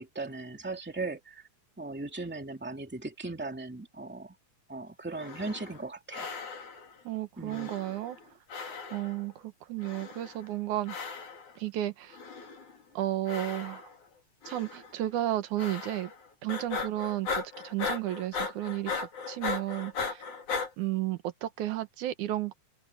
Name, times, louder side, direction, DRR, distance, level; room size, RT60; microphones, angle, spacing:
voice 1, 0.0-1.5 1.8-4.3 4.7-6.3 7.4-7.7, right 3 dB, 5° right, 2.3 m, -38 dB
sound 1, 5.1-5.8 6.1-6.9 7.5-8.2 8.5-9.2 9.8-10.5 10.9-11.5 12.1-12.8 13.3-14.0 14.4-14.9 15.6-16.2 16.5-20.7, left 5 dB, 85° left, 5.1 m, -37 dB
voice 2, 7.0-8.2 8.9-11.0 11.6-12.2 12.9-13.9 14.5-16.1 16.4-20.2 20.8-22.5, right 14 dB, 85° right, 2.6 m, -33 dB
omnidirectional pair, 3.4 m